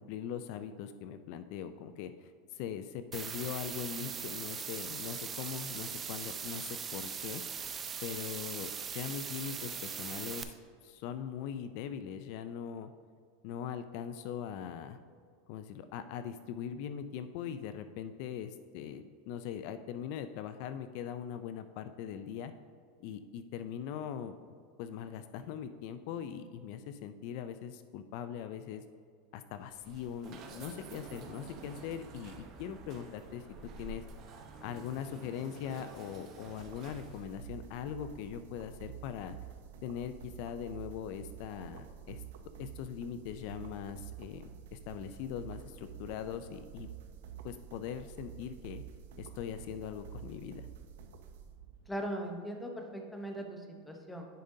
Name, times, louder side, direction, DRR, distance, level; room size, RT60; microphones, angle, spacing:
voice 1, 0.0-7.4 8.0-10.5 10.8-12.9 13.4-15.0 15.5-22.5 23.0-24.3 24.8-28.8 29.3-34.0 34.6-39.4 39.8-42.2 42.6-46.9 47.4-48.8 49.2-50.7, left 8 dB, 55° left, 11 dB, 0.3 m, -41 dB
noise AM radio, 3.1-10.4, right 7 dB, 20° right, 0.4 m, -40 dB
sound 1, 29.6-37.5, right 4 dB, 40° right, 0.8 m, -49 dB
sound 2, 36.5-51.9, right 8 dB, 80° right, 0.6 m, -49 dB
voice 2, 51.9-54.3, right 1 dB, 5° left, 2 dB, 0.8 m, -39 dB
10.0 x 5.1 x 2.7 m, 2.2 s
supercardioid pair, 145°, 0 cm